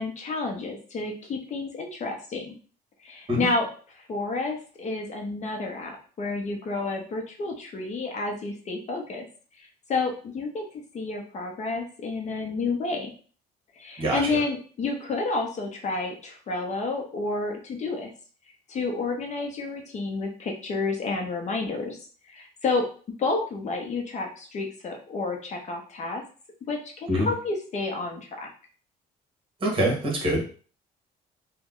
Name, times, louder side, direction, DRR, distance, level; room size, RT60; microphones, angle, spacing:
voice 1, 0.0-2.5 3.0-9.2 9.6-10.6 10.9-13.1 13.8-18.1 18.7-22.0 22.3-22.9 23.2-26.2 26.7-28.5, left 3 dB, 45° left, 2 dB, 0.7 m, -30 dB
voice 2, 29.6-30.4, equal, 30° right, -1 dB, 1.5 m, -24 dB
3.0 x 2.2 x 3.6 m, 0.41 s
cardioid pair, 110°, 17 cm